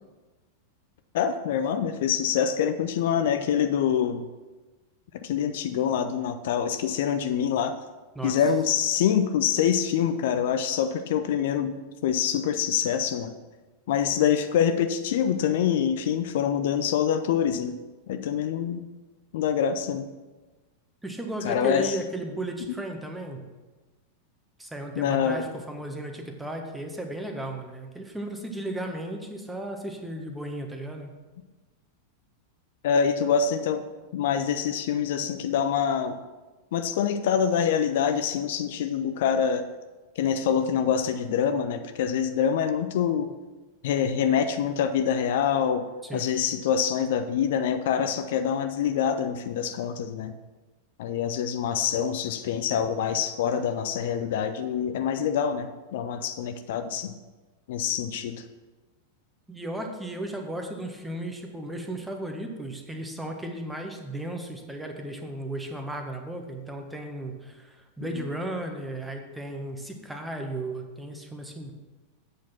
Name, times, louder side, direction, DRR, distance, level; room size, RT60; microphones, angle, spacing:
voice 1, 1.1-4.3 5.2-7.7 8.2-11.8 12.0-13.3 13.9-17.8 18.1-18.8 19.3-20.1 21.4-22.0 25.0-25.4 32.8-33.8 34.1-36.2 36.7-39.6 40.2-43.3 43.8-45.8 46.1-50.3 51.0-57.1 57.7-58.4 68.2-68.3, left 8 dB, 55° left, 9 dB, 0.5 m, -25 dB
voice 2, 21.0-23.4 24.6-31.1 46.0-46.3 59.5-71.7, right 1 dB, 5° right, 4 dB, 1.3 m, -35 dB
8.1 x 6.4 x 5.9 m, 1.2 s
figure-of-eight pair, 90°, 0 cm